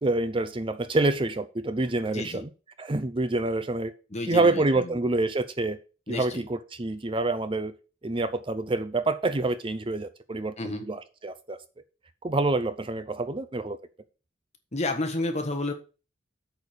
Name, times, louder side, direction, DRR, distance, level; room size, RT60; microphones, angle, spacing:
voice 1, 0.0-2.5 2.8-3.9 4.3-5.8 6.1-7.7 8.0-11.6 12.2-13.8, right 2 dB, 25° right, 0.6 m, -27 dB
voice 2, 2.1-2.4 4.1-5.0 6.1-6.4 10.6-10.8 14.7-15.7, left 2 dB, 35° left, 1.4 m, -31 dB
8.3 x 4.6 x 6.7 m
head